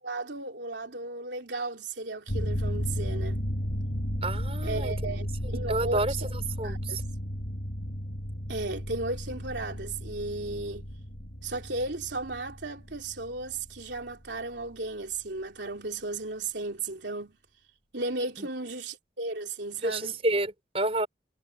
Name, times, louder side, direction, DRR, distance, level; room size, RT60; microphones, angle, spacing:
voice 1, 0.0-3.4 4.6-6.3 6.6-7.0 8.5-10.9 11.4-17.4 17.9-20.2, right 2 dB, 85° right, 3.2 m, -35 dB
sound 1, 2.3-14.4 14.7-14.8, equal, 60° left, 6.7 m, -34 dB
voice 2, 4.2-4.9 5.4-6.1 6.6-7.0 18.4-18.5 19.8-21.1, right 2 dB, 35° right, 5.2 m, -29 dB
head